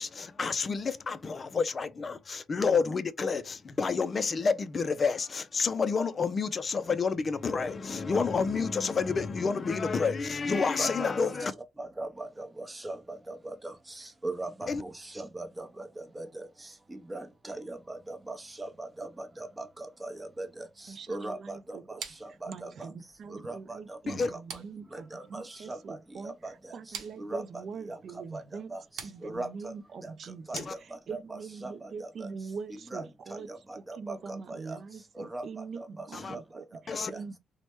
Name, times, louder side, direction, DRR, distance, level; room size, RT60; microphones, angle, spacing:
voice 1, 0.0-11.5 14.7-14.8 24.1-24.3 30.5-30.7 36.1-36.4 36.9-37.1, left 5 dB, 40° left, 0.3 m, -29 dB
voice 2, 10.8-11.3 11.8-22.9 23.3-29.7 30.0-32.5 32.9-37.2, right 2 dB, 15° right, 0.7 m, -41 dB
voice 3, 20.9-22.0 22.5-28.7 29.0-30.7 31.1-33.5 33.8-37.4, right 5 dB, 55° right, 0.4 m, -43 dB
sound 1, 22.0-31.3, right 8 dB, 85° right, 0.7 m, -48 dB
3.1 x 2.1 x 2.9 m
cardioid pair, 90°, 0 cm